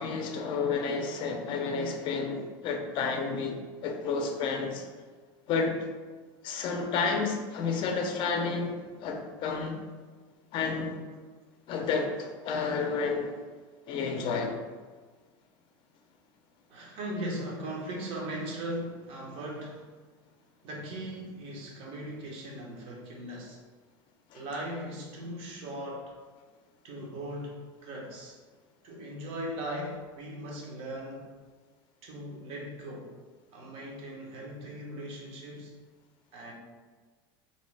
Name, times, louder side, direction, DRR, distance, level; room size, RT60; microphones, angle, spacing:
voice 1, 0.0-4.9 5.5-5.8 6.4-8.8 9.0-9.8 10.5-11.0 11.7-13.4 13.9-14.6 24.3-24.4, left 4 dB, 50° left, 3 dB, 0.4 m, -31 dB
voice 2, 16.7-19.9 20.6-23.6 24.3-26.1 26.8-28.4 28.8-31.3 32.0-33.1 33.5-35.7 36.3-36.5, right 1 dB, 55° right, -1 dB, 0.7 m, -39 dB
2.6 x 2.0 x 3.2 m, 1.4 s
supercardioid pair, 110°, 11 cm